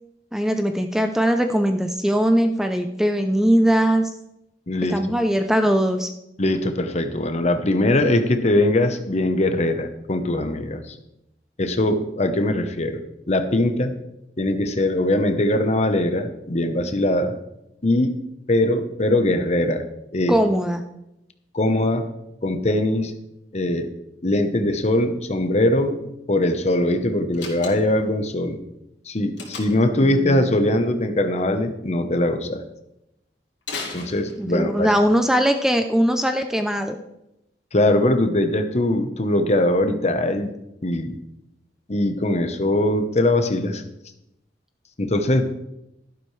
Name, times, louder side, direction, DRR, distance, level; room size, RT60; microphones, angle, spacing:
voice 1, 0.3-4.1 4.9-6.1 20.3-20.8 30.0-30.4 34.4-37.0, equal, 5° right, 6 dB, 0.5 m, -20 dB
voice 2, 4.7-5.0 6.4-11.0 11.6-13.0 13.3-13.9 14.4-17.3 17.8-18.2 18.5-19.9 20.1-20.4 21.5-22.1 22.4-23.1 23.5-23.9 24.2-28.6 29.1-32.6 33.9-34.9 37.7-40.5 40.8-41.2 41.9-43.8 45.0-45.4, left 1 dB, 40° left, 8 dB, 0.9 m, -21 dB
Slam, 27.3-28.1 29.4-29.9 33.6-34.7, left 4 dB, 80° left, 2.6 m, -35 dB
12.5 x 11.5 x 3.2 m, 0.87 s
head